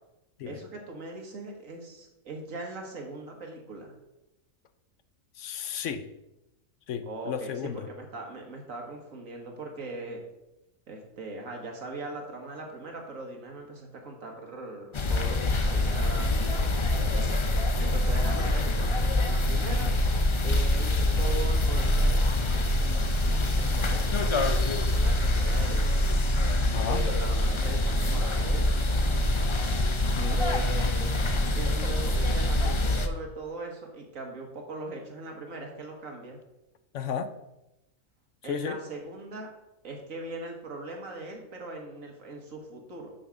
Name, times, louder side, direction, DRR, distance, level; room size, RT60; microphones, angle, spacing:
voice 1, 0.5-3.9 7.0-10.2 10.9-19.9 20.4-26.0 26.7-28.7 30.3-31.1 31.4-36.4 38.4-39.5 39.8-43.1, right 2 dB, 80° right, 1 dB, 2.0 m, -40 dB
voice 2, 5.4-6.0 6.9-7.9 26.6-27.0 30.0-30.4 36.9-37.3 38.5-38.8, left 8 dB, 70° left, 10 dB, 1.0 m, -33 dB
sound 1, 14.9-33.1, left 1 dB, 40° left, 0.4 m, -25 dB
6.5 x 5.9 x 6.4 m, 0.92 s
omnidirectional pair, 1.4 m